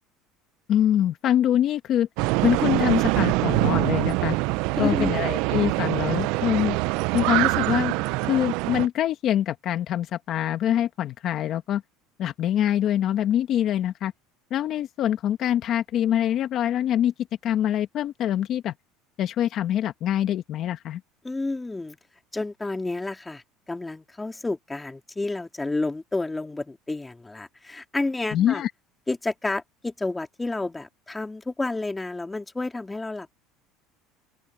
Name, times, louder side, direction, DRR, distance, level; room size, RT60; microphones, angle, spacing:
voice 1, 0.7-2.1 2.4-4.4 4.8-6.8 7.1-7.9 8.2-11.8 12.2-14.1 14.5-17.1 17.4-18.7 19.2-21.0 28.3-28.7, left 11 dB, 50° left, 1.4 m, -24 dB
sound 1, 2.2-8.9, right 23 dB, 70° right, 0.5 m, -24 dB
voice 2, 4.8-5.1 21.2-22.0 22.3-28.6 29.1-33.3, left 2 dB, 10° left, 3.0 m, -30 dB
open air
supercardioid pair, 120°, 0 cm